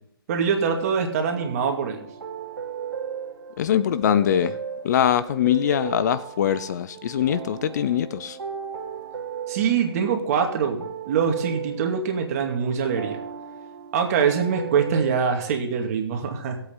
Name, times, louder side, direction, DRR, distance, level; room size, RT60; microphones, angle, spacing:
voice 1, 0.3-2.1 9.5-13.2 13.9-16.6, right 6 dB, 40° right, 3 dB, 2.3 m, -24 dB
sound 1, 1.3-15.6, right 7 dB, 80° right, 1.7 m, -36 dB
voice 2, 3.6-4.6 4.8-8.4, left 10 dB, 45° left, 14 dB, 0.7 m, -22 dB
17.5 x 8.3 x 3.9 m, 0.77 s
hypercardioid pair, 145°, 13 cm